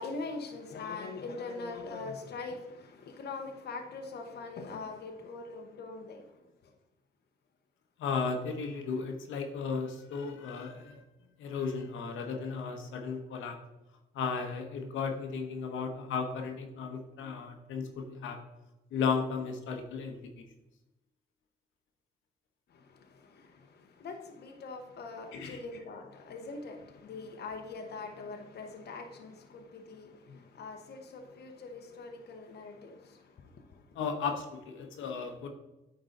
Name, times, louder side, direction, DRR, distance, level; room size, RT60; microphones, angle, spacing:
voice 1, 0.0-6.3 22.7-33.8, left 3 dB, 55° left, 4 dB, 0.8 m, -42 dB
voice 2, 8.0-11.0 11.4-13.6 14.1-18.4 18.9-20.4 25.3-25.6 33.9-35.5, left 5 dB, 85° left, 3 dB, 1.1 m, -35 dB
9.1 x 3.9 x 3.9 m, 0.98 s
cardioid pair, 90°, 20 cm